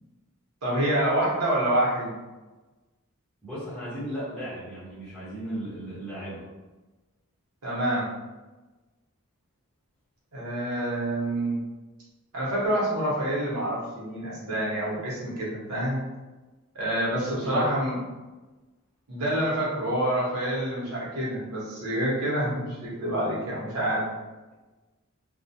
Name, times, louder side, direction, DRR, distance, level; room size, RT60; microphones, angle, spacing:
voice 1, 0.6-2.1 7.6-8.1 10.3-11.6 12.3-16.0 16.7-17.9 19.1-24.1, right 1 dB, 85° right, -6 dB, 0.9 m, -27 dB
voice 2, 3.4-6.4 17.4-17.8, right 1 dB, 5° left, -12 dB, 0.9 m, -35 dB
2.2 x 2.1 x 2.7 m, 1.2 s
head